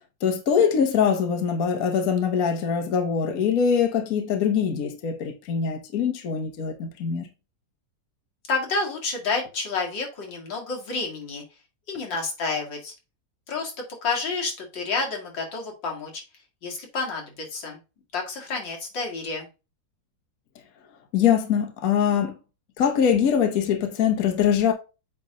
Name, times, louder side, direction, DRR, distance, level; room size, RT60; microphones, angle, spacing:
voice 1, 0.2-7.3 21.1-22.3 22.8-24.7, left 7 dB, 55° left, 1.3 m, -23 dB
voice 2, 8.5-11.4 11.9-12.9 13.5-13.7 14.0-16.2 16.6-17.8 18.1-19.5, left 4 dB, 85° left, 2.7 m, -29 dB
8.3 x 3.5 x 3.8 m
omnidirectional pair, 1.9 m